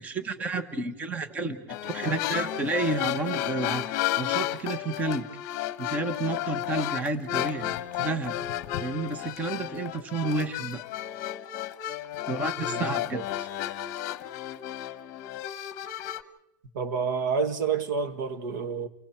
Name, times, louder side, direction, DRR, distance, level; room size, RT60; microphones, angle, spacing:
voice 1, 0.0-5.2 5.8-8.3 8.8-10.8 12.3-13.5, right 3 dB, 15° right, 1.1 m, -31 dB
sound 1, 1.7-16.2, left 13 dB, 35° left, 1.1 m, -32 dB
voice 2, 12.6-13.2 16.7-18.9, right 5 dB, 75° right, 2.0 m, -29 dB
29.5 x 23.5 x 4.5 m
supercardioid pair, 165°, 10 cm